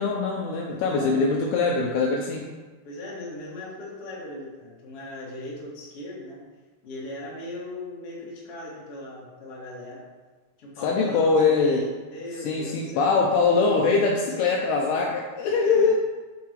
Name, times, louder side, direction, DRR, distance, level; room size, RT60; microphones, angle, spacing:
voice 1, 0.0-2.5 10.8-11.8 12.4-15.9, left 4 dB, 75° left, -1 dB, 2.6 m, -22 dB
voice 2, 0.7-1.3 2.8-6.4 6.8-10.1 10.6-13.1 14.2-14.4 15.6-15.9, left 1 dB, 40° left, -6 dB, 2.5 m, -38 dB
8.5 x 7.1 x 3.2 m, 1.3 s
omnidirectional pair, 4.9 m